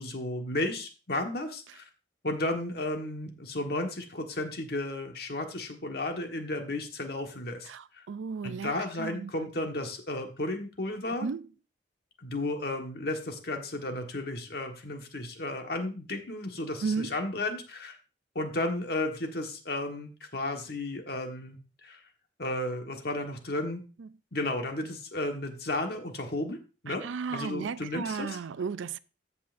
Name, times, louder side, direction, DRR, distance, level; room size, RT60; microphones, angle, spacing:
voice 1, 0.0-1.9 2.2-8.1 8.4-11.3 12.2-18.0 18.3-22.0 22.4-23.8 24.3-26.6 26.8-28.4, left 2 dB, 55° left, 1.4 m, -33 dB
voice 2, 7.7-8.7 9.0-9.3 11.2-11.4 16.8-17.1 24.0-24.1 26.9-29.0, right 5 dB, 85° right, 0.4 m, -34 dB
15.0 x 5.7 x 2.6 m
head